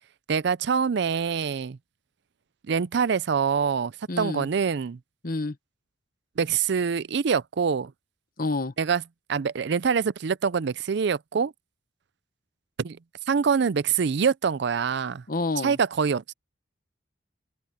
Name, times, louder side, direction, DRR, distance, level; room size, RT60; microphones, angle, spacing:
voice 1, 0.3-1.8 2.7-5.0 6.4-7.9 8.8-9.0 9.3-11.5 12.8-13.0 13.3-15.2 15.6-16.3, right 6 dB, 60° right, 0.4 m, -25 dB
voice 2, 4.1-4.5 5.2-5.6 8.4-8.7 15.3-15.8, left 3 dB, 50° left, 1.1 m, -28 dB
open air
head